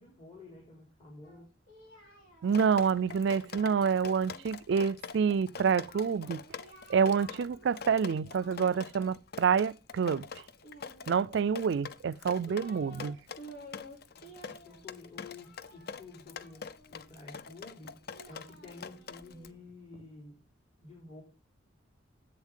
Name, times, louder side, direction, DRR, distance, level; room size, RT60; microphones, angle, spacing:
voice 1, 0.0-1.5 14.1-17.9 18.3-20.4 20.8-21.2, left 3 dB, 35° left, 3.9 m, -51 dB
Singing, 1.2-4.5 5.6-7.7 8.0-9.2 10.6-11.5 12.1-13.1 13.4-17.0 17.8-20.1, right 1 dB, 75° left, 3.5 m, -53 dB
voice 2, 2.4-6.4 6.9-10.3 11.1-13.2, right 6 dB, 65° right, 0.4 m, -28 dB
Drip, 2.5-19.5, left 6 dB, 55° left, 0.6 m, -45 dB
10.5 x 8.0 x 3.7 m
head